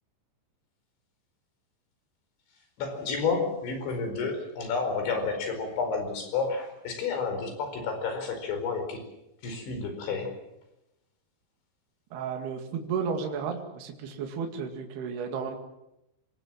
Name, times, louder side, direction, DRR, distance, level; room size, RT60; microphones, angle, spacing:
voice 1, 2.8-9.0 9.4-10.3, left 4 dB, 85° left, 6 dB, 7.1 m, -30 dB
voice 2, 12.1-15.6, right 6 dB, 65° right, 3 dB, 4.1 m, -33 dB
26.5 x 20.5 x 7.7 m, 0.89 s
omnidirectional pair, 5.2 m